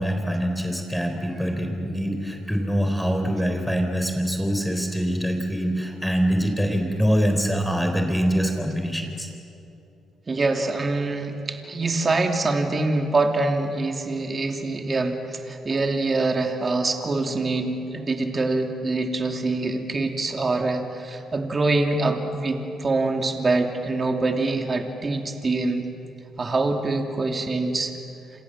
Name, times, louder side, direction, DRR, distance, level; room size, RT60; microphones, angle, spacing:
voice 1, 0.0-9.3, equal, ahead, 4 dB, 4.0 m, -24 dB
voice 2, 10.3-25.9 26.4-27.9, right 3 dB, 30° right, 4 dB, 2.8 m, -24 dB
29.0 x 27.0 x 7.5 m, 2.7 s
cardioid pair, 90°, 0 cm